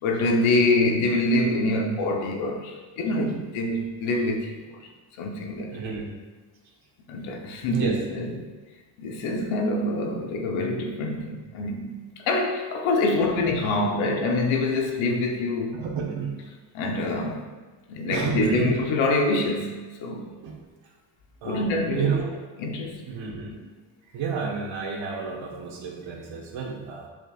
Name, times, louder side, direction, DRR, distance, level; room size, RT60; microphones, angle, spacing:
voice 1, 0.0-4.5 5.2-5.8 7.1-8.4 9.0-15.8 16.7-17.5 17.9-20.3 21.4-22.1 22.6-23.2, left 2 dB, 85° left, 2 dB, 1.1 m, -25 dB
voice 2, 5.7-6.1 7.7-8.0 15.7-16.3 18.1-18.7 20.4-20.6 21.4-21.7 21.9-22.3 23.1-23.6 24.1-27.1, right 6 dB, 75° right, -1 dB, 1.5 m, -30 dB
7.4 x 5.3 x 2.5 m, 1.3 s
cardioid pair, 100°, 46 cm